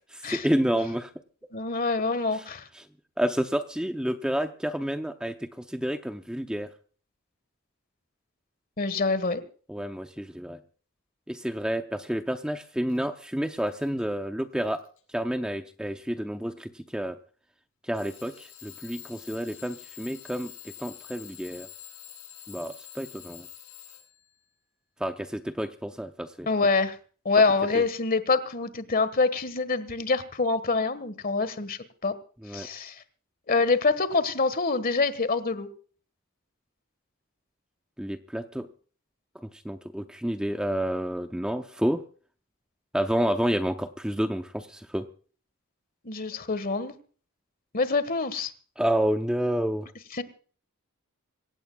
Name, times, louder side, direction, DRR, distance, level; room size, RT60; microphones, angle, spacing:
voice 1, 0.3-1.1 2.3-2.4 2.8-2.9 3.2-6.7 9.7-10.6 11.3-14.8 15.1-17.2 17.9-21.7 22.5-23.5 25.0-26.5 27.7-27.8 32.4-32.7 38.0-38.7 39.4-42.0 42.9-45.1 48.8-49.9, equal, 5° right, 7 dB, 0.7 m, -29 dB
voice 2, 1.5-2.7 8.8-9.4 26.5-26.9 27.2-32.1 32.5-33.0 33.5-35.7 46.0-46.9 47.7-48.5 50.1-50.2, left 4 dB, 40° left, 14 dB, 1.5 m, -25 dB
Alarm / Clock, 12.9-13.0 13.6-14.0 14.6-15.0 15.9-16.0 17.9-24.3, left 11 dB, 70° left, 7.4 m, -47 dB
26.0 x 16.5 x 2.3 m, 0.42 s
head